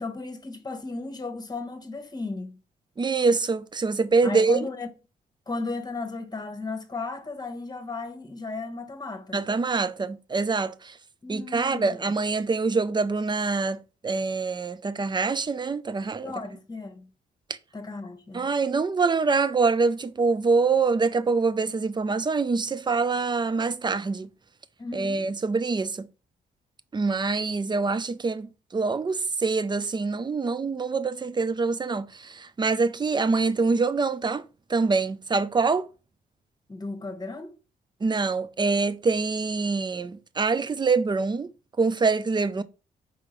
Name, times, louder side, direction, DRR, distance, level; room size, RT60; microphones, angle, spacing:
voice 1, 0.0-2.6 4.2-4.9 5.5-9.4 11.2-12.0 16.2-17.1 17.7-18.5 24.8-25.2 36.7-37.6, left 3 dB, 20° left, 1.2 m, -35 dB
voice 2, 3.0-4.6 9.3-10.9 11.3-13.8 14.0-16.3 18.3-24.3 24.9-26.1 26.9-34.4 34.7-35.9 38.0-41.5 41.8-42.6, right 4 dB, 25° right, 0.4 m, -25 dB
4.8 x 3.6 x 3.1 m
supercardioid pair, 60°, 18 cm